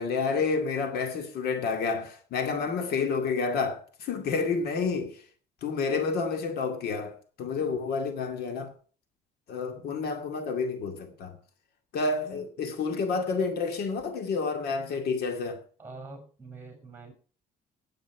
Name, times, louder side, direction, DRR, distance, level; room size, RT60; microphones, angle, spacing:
voice 1, 0.0-5.2 5.6-8.7 9.5-11.4 11.9-15.6, left 4 dB, 70° left, 2.3 m, -29 dB
voice 2, 15.8-17.1, right 3 dB, 15° right, 5.8 m, -45 dB
16.5 x 8.6 x 4.7 m
cardioid pair, 110°, 17 cm